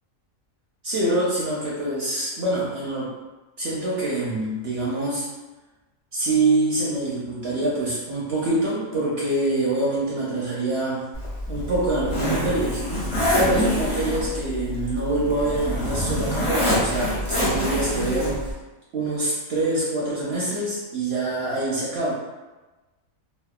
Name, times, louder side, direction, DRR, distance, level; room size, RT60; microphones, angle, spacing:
voice 1, 0.8-3.1 3.6-5.3 6.1-11.1 11.5-12.8 13.3-18.5 18.9-22.1, right 2 dB, 65° right, -6 dB, 0.7 m, -25 dB
Zipper (clothing), 11.1-18.5, equal, 50° left, 0.3 m, -26 dB
sound 1, 12.8-16.5, left 3 dB, 65° left, 0.8 m, -35 dB
2.8 x 2.0 x 2.3 m, 1.1 s
omnidirectional pair, 1.4 m